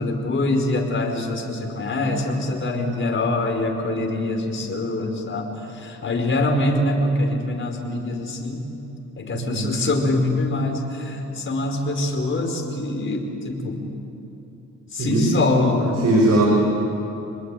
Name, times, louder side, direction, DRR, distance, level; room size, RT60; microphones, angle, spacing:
voice 1, 0.0-5.5 5.7-8.6 9.2-13.8 14.9-16.1, left 2 dB, 40° left, 3 dB, 5.0 m, -24 dB
voice 2, 9.4-9.8 15.0-15.4 16.0-16.5, right 1 dB, 60° right, 0 dB, 5.2 m, -19 dB
27.5 x 20.5 x 9.3 m, 2.9 s
cardioid pair, 90°, 30 cm